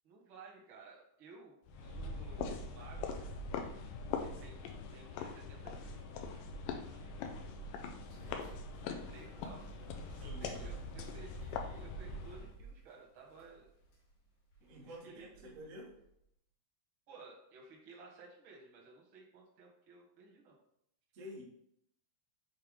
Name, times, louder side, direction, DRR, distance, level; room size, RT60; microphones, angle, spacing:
voice 1, 0.0-3.2 4.2-7.6 8.8-9.6 10.2-13.7 14.7-15.3 17.1-20.5, right 4 dB, 55° right, -2 dB, 1.5 m, -56 dB
sound 1, 1.7-12.6, left 4 dB, 80° left, 2.3 m, -42 dB
sound 2, 7.8-16.3, right 2 dB, 55° left, 2.6 m, -58 dB
voice 2, 10.1-10.7 14.6-15.9 21.1-21.4, equal, 85° right, -3 dB, 0.7 m, -50 dB
6.7 x 4.3 x 3.6 m, 0.73 s
omnidirectional pair, 4.1 m